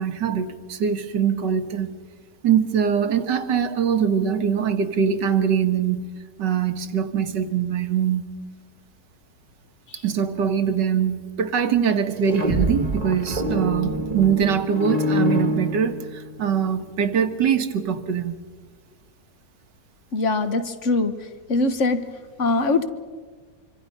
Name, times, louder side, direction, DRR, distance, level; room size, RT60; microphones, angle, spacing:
voice 1, 0.0-1.9 2.4-6.1 6.4-8.3 10.0-18.4, right 7 dB, 80° right, 8 dB, 2.0 m, -23 dB
sound 1, 12.1-16.4, equal, 25° right, 1.5 m, -25 dB
voice 2, 20.1-21.1 21.5-22.0 22.4-22.9, left 3 dB, 45° left, 10 dB, 1.5 m, -21 dB
26.0 x 25.0 x 5.5 m, 1.5 s
omnidirectional pair, 1.9 m